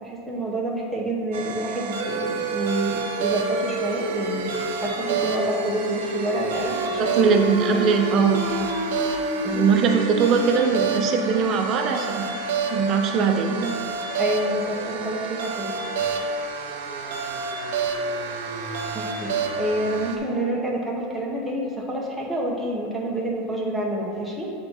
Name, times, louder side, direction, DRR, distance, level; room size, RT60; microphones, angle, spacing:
voice 1, 0.0-8.3 9.4-9.7 14.2-15.7 18.9-24.5, right 1 dB, ahead, -5 dB, 0.9 m, -28 dB
sound 1, 1.3-20.2, right 3 dB, 80° right, 0.8 m, -28 dB
voice 2, 7.2-8.4 9.5-12.4 12.7-13.7, right 5 dB, 35° right, 4 dB, 0.6 m, -21 dB
7.6 x 3.6 x 5.3 m, 2.5 s
supercardioid pair, 160°, 0 cm